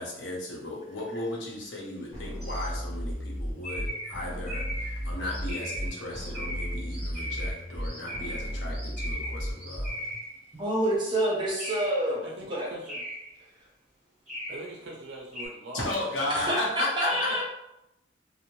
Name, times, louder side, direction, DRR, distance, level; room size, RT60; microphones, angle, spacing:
voice 1, 0.0-10.1 15.7-17.4, left 1 dB, 80° left, -4 dB, 0.8 m, -35 dB
sound 1, 2.1-10.1, equal, 20° left, 0.7 m, -35 dB
sound 2, 2.4-2.7 3.6-10.5 11.6-12.1 12.8-13.4 14.3-14.8 15.3-15.5, equal, ahead, 1.3 m, -38 dB
voice 2, 10.5-12.2 12.5-12.7 16.3-17.4, right 1 dB, 25° right, -4 dB, 0.7 m, -27 dB
voice 3, 12.2-13.0 14.5-16.3 17.3-17.4, right 2 dB, 65° right, -1 dB, 0.4 m, -42 dB
2.7 x 2.0 x 3.0 m, 0.88 s
head